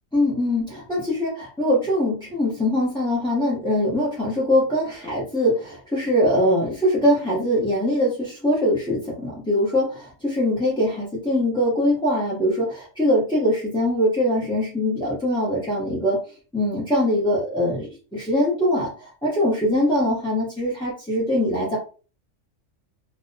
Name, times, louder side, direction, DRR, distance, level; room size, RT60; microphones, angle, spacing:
voice 1, 0.1-16.2 16.5-21.8, left 1 dB, 5° left, -7 dB, 0.4 m, -22 dB
2.6 x 2.0 x 2.6 m, 0.36 s
omnidirectional pair, 1.4 m